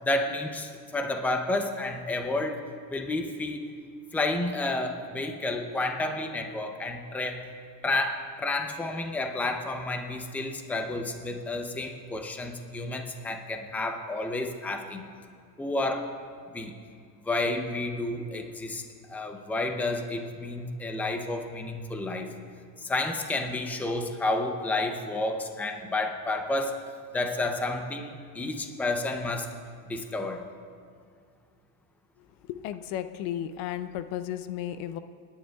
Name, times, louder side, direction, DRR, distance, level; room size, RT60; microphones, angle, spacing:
voice 1, 0.0-2.6 2.9-3.7 4.1-7.4 7.8-15.1 15.6-16.1 16.5-16.8 17.2-18.8 19.1-22.3 22.8-26.8 27.1-29.5 29.9-30.4, left 2 dB, 5° left, 4 dB, 0.6 m, -30 dB
voice 2, 32.5-35.0, left 11 dB, 55° left, 11 dB, 0.6 m, -34 dB
28.0 x 10.0 x 2.3 m, 2.2 s
cardioid pair, 140°, 46 cm